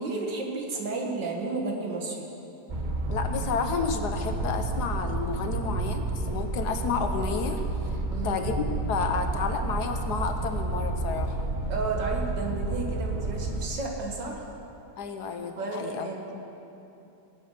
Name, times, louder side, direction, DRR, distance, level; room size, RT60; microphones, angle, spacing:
voice 1, 0.0-2.3 8.1-8.4 11.7-14.5 15.6-16.3, right 3 dB, 80° right, 0 dB, 2.3 m, -32 dB
sound 1, 2.7-13.7, right 2 dB, 35° right, 0.9 m, -30 dB
voice 2, 3.1-7.6 8.2-11.5 15.0-16.1 16.3-16.4, left 5 dB, 70° left, 6 dB, 1.5 m, -31 dB
20.5 x 7.9 x 5.9 m, 2.8 s
omnidirectional pair, 1.9 m